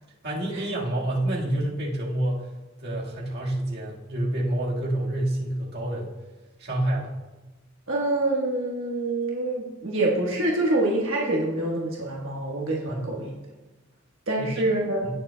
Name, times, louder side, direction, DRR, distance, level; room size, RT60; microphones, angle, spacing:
voice 1, 0.2-2.5 2.8-6.1 6.6-7.1 12.9-13.0 14.4-14.7, right 1 dB, 55° right, -3 dB, 1.7 m, -28 dB
voice 2, 7.9-13.3 14.3-15.1, right 2 dB, 75° right, -3 dB, 1.3 m, -26 dB
17.0 x 6.9 x 2.2 m, 1.1 s
head